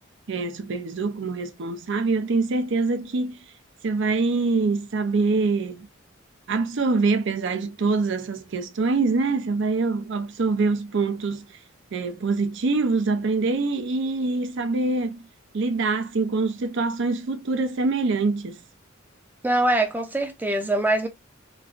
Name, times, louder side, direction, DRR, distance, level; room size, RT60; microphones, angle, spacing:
voice 1, 0.3-3.4 3.8-5.9 6.5-11.5 11.9-15.2 15.5-18.6, right 3 dB, 60° right, 0.5 m, -24 dB
voice 2, 19.4-21.1, right 1 dB, 10° right, 0.5 m, -23 dB
3.0 x 2.4 x 2.3 m
head